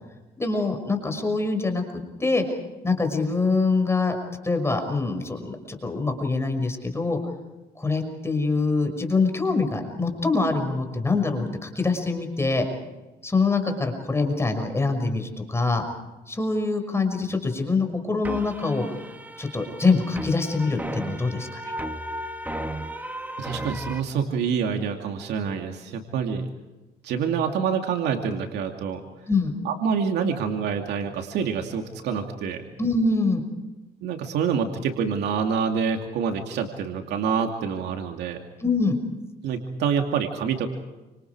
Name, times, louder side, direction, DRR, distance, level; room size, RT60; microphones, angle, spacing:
voice 1, 0.4-1.8 2.2-2.4 2.8-4.2 4.4-7.2 7.8-12.7 13.2-15.8 16.3-19.0 19.4-21.7 29.3-29.5 32.8-33.4 38.6-39.0, left 3 dB, 15° left, 5 dB, 5.9 m, -24 dB
sound 1, 18.2-24.0, right 1 dB, 10° right, 1.7 m, -35 dB
voice 2, 23.4-26.5 27.0-29.0 29.6-32.7 34.0-38.4 39.4-40.7, right 6 dB, 85° right, 3 dB, 2.6 m, -27 dB
29.5 x 26.5 x 4.9 m, 1.1 s
cardioid pair, 105°, 17 cm